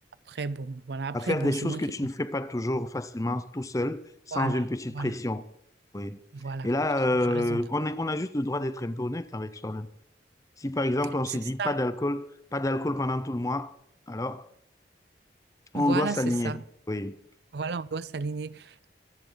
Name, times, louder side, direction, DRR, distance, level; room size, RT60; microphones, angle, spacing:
voice 1, 0.3-1.8 4.3-4.7 4.9-5.2 6.3-6.7 7.3-7.6 11.3-11.8 15.7-16.6 17.5-18.9, right 4 dB, 65° right, 0.5 m, -33 dB
voice 2, 1.1-4.0 4.3-5.5 5.9-6.2 6.6-9.9 10.6-12.3 12.5-13.7 14.1-14.5 15.7-16.6 16.9-17.2, left 1 dB, 20° left, 0.7 m, -28 dB
25.0 x 10.5 x 3.9 m
head